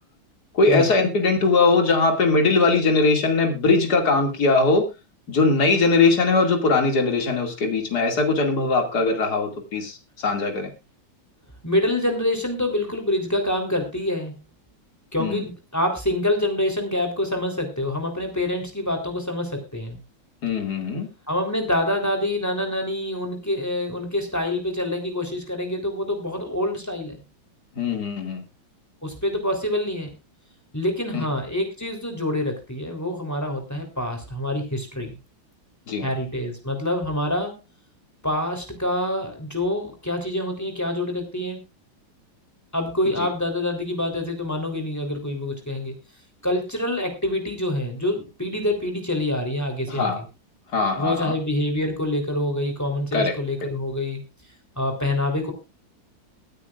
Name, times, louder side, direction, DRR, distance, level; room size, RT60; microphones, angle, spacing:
voice 1, 0.5-4.8 5.3-10.7 15.2-15.4 20.4-21.1 27.8-28.4 31.1-31.3 35.9-36.1 43.2-43.3 49.9-50.2 50.7-51.3 53.1-53.3, left 3 dB, 55° left, 4 dB, 2.9 m, -20 dB
voice 2, 11.6-14.4 15.1-20.0 21.3-27.2 29.0-30.1 30.7-35.2 36.0-37.6 38.2-41.6 42.7-45.9 46.4-50.2 51.0-54.2 54.8-55.5, left 1 dB, 10° left, 3 dB, 3.4 m, -26 dB
23.5 x 9.3 x 2.5 m, 0.26 s
omnidirectional pair, 2.1 m